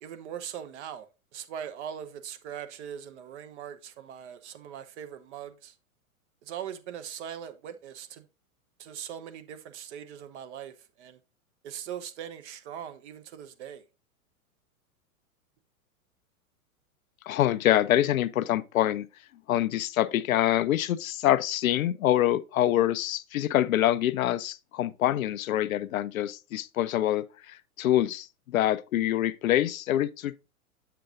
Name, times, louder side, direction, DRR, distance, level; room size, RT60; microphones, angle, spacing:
voice 1, 0.0-5.8 6.4-8.3 8.8-11.2 11.6-13.8, right 9 dB, 50° right, 0.9 m, -41 dB
voice 2, 17.3-19.1 19.5-30.4, left 13 dB, 70° left, 0.6 m, -25 dB
6.8 x 6.7 x 2.5 m
hypercardioid pair, 105°, 43 cm